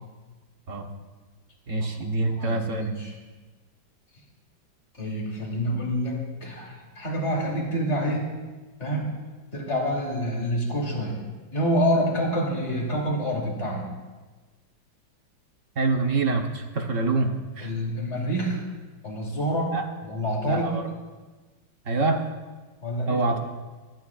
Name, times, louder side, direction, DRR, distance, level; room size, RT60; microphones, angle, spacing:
voice 1, 1.7-2.9 15.8-17.7 19.7-19.8 20.5-20.8 21.9-22.2 23.1-23.4, right 3 dB, 45° right, 3 dB, 1.2 m, -25 dB
voice 2, 2.3-3.1 4.9-8.2 8.8-9.1 9.5-11.2 11.5-13.9 17.6-18.6 19.0-19.8 20.1-20.7 22.8-23.2, equal, 35° left, -2 dB, 3.3 m, -27 dB
23.5 x 13.0 x 2.5 m, 1.3 s
omnidirectional pair, 2.2 m